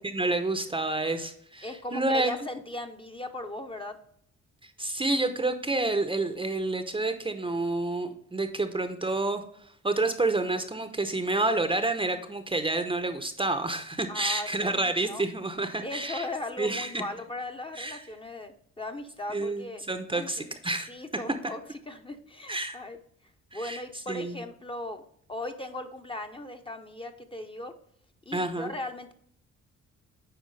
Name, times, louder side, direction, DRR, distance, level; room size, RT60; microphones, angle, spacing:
voice 1, 0.0-2.3 4.6-9.4 9.8-16.3 16.6-17.0 17.7-18.0 19.3-20.9 22.5-22.8 23.5-23.8 24.1-24.4 28.3-28.7, right 2 dB, 15° right, 8 dB, 0.7 m, -29 dB
voice 2, 1.6-4.0 14.1-15.3 15.8-19.8 20.1-20.5 20.9-23.0 23.5-25.0 25.3-27.8 28.3-29.1, left 2 dB, 15° left, 5 dB, 0.8 m, -38 dB
9.4 x 4.5 x 3.3 m, 0.66 s
cardioid pair, 90°, 30 cm